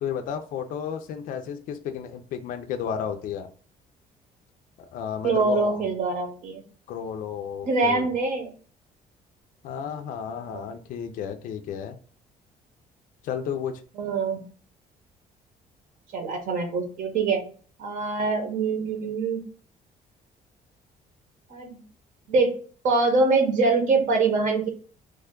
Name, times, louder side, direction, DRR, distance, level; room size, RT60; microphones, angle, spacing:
voice 1, 0.0-3.5 4.8-5.9 6.9-8.1 9.6-12.0 13.2-13.8, left 8 dB, 60° left, 6 dB, 0.4 m, -33 dB
voice 2, 5.2-6.6 7.6-8.5 10.5-10.7 14.0-14.4 16.1-17.4 17.8-19.4 21.5-21.8 22.3-22.6 22.8-24.7, right 3 dB, 55° right, 3 dB, 0.8 m, -24 dB
3.2 x 2.2 x 3.6 m, 0.41 s
cardioid pair, 170°, 16 cm